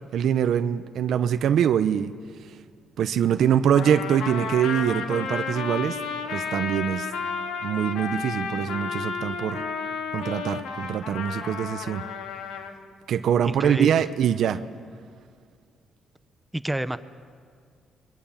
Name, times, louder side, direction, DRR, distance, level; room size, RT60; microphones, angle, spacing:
voice 1, 0.1-2.1 3.0-6.0 6.3-7.1 7.6-9.6 10.1-12.1 13.1-14.6, right 9 dB, 70° right, 10 dB, 0.8 m, -23 dB
Trumpet, 3.7-12.7, left 5 dB, 85° left, 2.1 m, -32 dB
voice 2, 13.4-13.9 16.5-17.0, right 1 dB, 5° right, 12 dB, 0.8 m, -28 dB
28.5 x 22.5 x 7.2 m, 2.1 s
cardioid pair, 90°, 0 cm